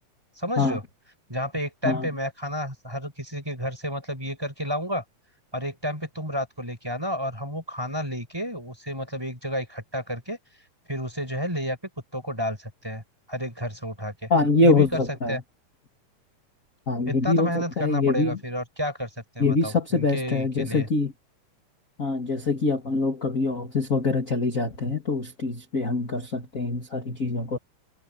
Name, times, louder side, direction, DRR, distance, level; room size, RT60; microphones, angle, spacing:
voice 1, 0.4-0.8 1.3-5.0 5.5-10.4 10.9-11.8 12.1-13.0 13.3-14.3 14.6-15.0 15.3-15.4 17.1-19.1 19.3-20.9, equal, 5° right, 5.2 m, -31 dB
voice 2, 14.3-15.4 16.9-18.4 19.4-21.1 22.0-27.6, left 3 dB, 25° left, 3.0 m, -24 dB
omnidirectional pair, 3.7 m